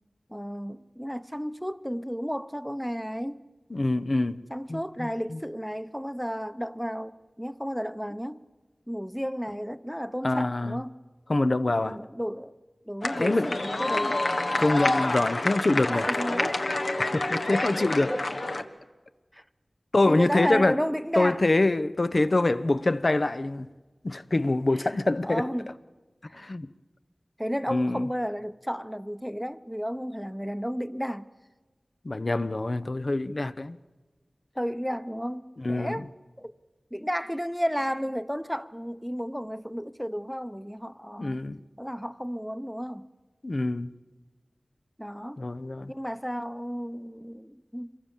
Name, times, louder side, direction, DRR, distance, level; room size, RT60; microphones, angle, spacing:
voice 1, 0.3-3.4 4.5-8.4 8.9-11.0 11.7-12.6 12.9-14.4 15.2-15.3 15.9-16.6 17.5-18.2 19.3-19.4 20.1-21.4 24.7-25.7 26.3-26.4 27.4-31.3 34.5-36.1 36.4-36.5 36.9-41.4 41.8-43.1 45.0-45.4 45.9-48.0, equal, ahead, 0.9 m, -33 dB
voice 2, 3.7-5.4 10.2-10.8 11.3-12.0 13.2-13.6 14.6-16.1 17.0-18.1 19.9-20.8 21.2-23.7 24.0-25.4 26.3-26.7 27.7-28.1 32.0-33.8 35.6-36.0 41.2-41.6 43.4-43.9 45.4-45.9, left 2 dB, 55° left, 0.8 m, -25 dB
sound 1, 13.0-18.6, left 2 dB, 75° left, 1.3 m, -28 dB
26.0 x 22.5 x 7.3 m
wide cardioid pair, 45°, 0 cm